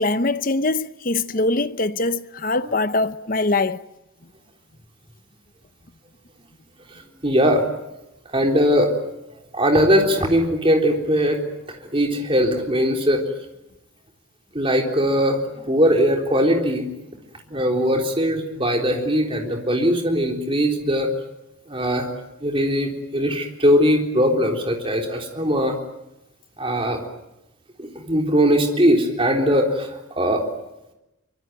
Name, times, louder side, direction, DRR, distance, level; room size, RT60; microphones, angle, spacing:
voice 1, 0.0-3.8, left 2 dB, 40° left, 0.9 m, -22 dB
voice 2, 7.2-7.6 8.3-8.9 9.5-13.2 14.5-16.9 17.5-21.1 21.7-22.1 22.4-25.8 26.6-27.0 27.8-30.4, equal, 25° right, 3.8 m, -20 dB
24.5 x 23.5 x 9.3 m
head